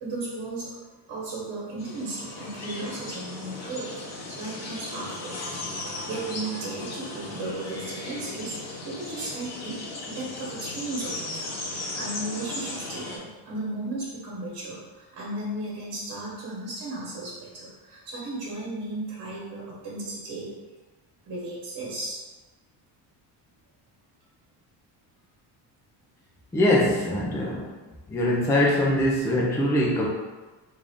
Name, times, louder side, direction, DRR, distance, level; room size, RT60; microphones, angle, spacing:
voice 1, 0.0-0.8 1.1-5.4 6.1-11.5 12.0-20.6 21.2-22.2, right 2 dB, 60° right, -6 dB, 1.3 m, -35 dB
sound 1, 1.8-13.2, left 2 dB, 40° left, 0.7 m, -36 dB
voice 2, 26.5-27.7 28.1-30.1, left 1 dB, 5° left, -3 dB, 0.3 m, -22 dB
3.5 x 2.6 x 3.5 m, 1.2 s
cardioid pair, 145°, 43 cm